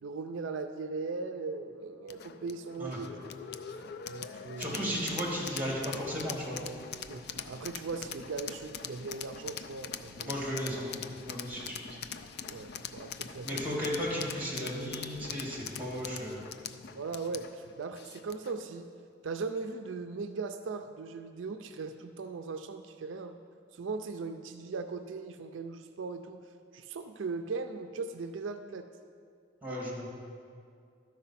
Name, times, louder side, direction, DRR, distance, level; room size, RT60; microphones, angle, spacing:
voice 1, 0.0-3.2 4.1-5.0 7.1-10.4 12.4-13.8 16.9-18.9 19.2-23.4 23.7-26.4 26.7-28.9, right 4 dB, 80° right, 7 dB, 0.4 m, -39 dB
sound 1, 2.1-18.6, left 7 dB, 55° left, 0.4 m, -43 dB
voice 2, 4.6-6.6 10.2-12.0 13.4-16.4 29.6-30.1, equal, 10° right, -5 dB, 2.3 m, -35 dB
12.5 x 4.8 x 5.7 m, 2.2 s
head